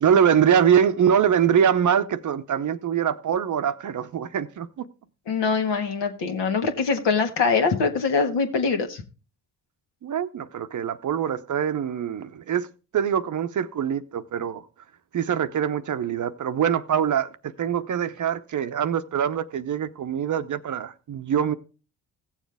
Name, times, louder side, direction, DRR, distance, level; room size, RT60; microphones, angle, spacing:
voice 1, 0.0-4.9 10.0-12.7 12.9-14.6 15.1-21.5, right 8 dB, 40° right, 0.7 m, -23 dB
voice 2, 5.3-9.0, left 5 dB, 60° left, 1.7 m, -23 dB
16.0 x 7.2 x 3.4 m
hypercardioid pair, 45°, 46 cm